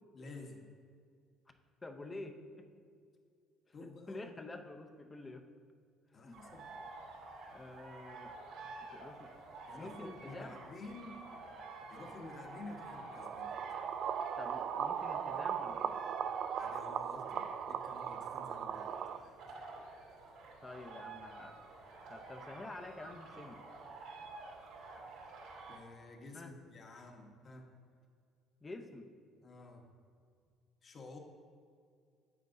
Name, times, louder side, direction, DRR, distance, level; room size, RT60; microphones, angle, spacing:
voice 1, 0.1-0.7 3.7-4.3 6.1-6.7 9.7-11.2 11.9-13.6 16.6-19.6 24.2-24.3 25.7-27.7 29.4-29.9 30.8-31.2, left 2 dB, 40° left, 2 dB, 1.2 m, -51 dB
voice 2, 1.8-2.7 3.8-5.5 6.2-6.4 7.5-8.4 8.8-9.3 9.7-10.5 14.4-16.0 20.6-21.5 22.1-23.6 26.3-26.5 28.6-29.1, left 2 dB, 20° left, 6 dB, 0.6 m, -48 dB
sound 1, 6.3-25.8, right 3 dB, 80° right, 2.0 m, -50 dB
sound 2, 13.1-19.2, right 8 dB, 55° right, 0.3 m, -38 dB
9.4 x 8.4 x 2.6 m, 2.3 s
cardioid pair, 120°, 0 cm